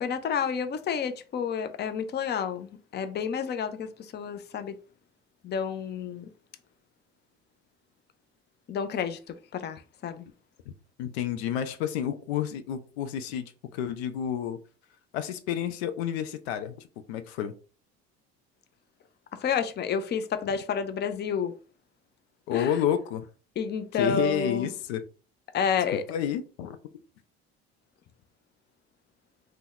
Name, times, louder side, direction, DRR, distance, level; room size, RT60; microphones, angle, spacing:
voice 1, 0.0-4.8 5.4-6.3 8.7-10.2 19.4-21.5 22.5-22.8 23.6-24.7 25.5-26.0, left 6 dB, 35° left, 0.5 m, -30 dB
voice 2, 11.0-14.6 15.1-17.5 22.5-23.3 24.0-25.0 25.9-26.8, left 10 dB, 85° left, 0.5 m, -30 dB
2.8 x 2.1 x 3.8 m
hypercardioid pair, 70°, 31 cm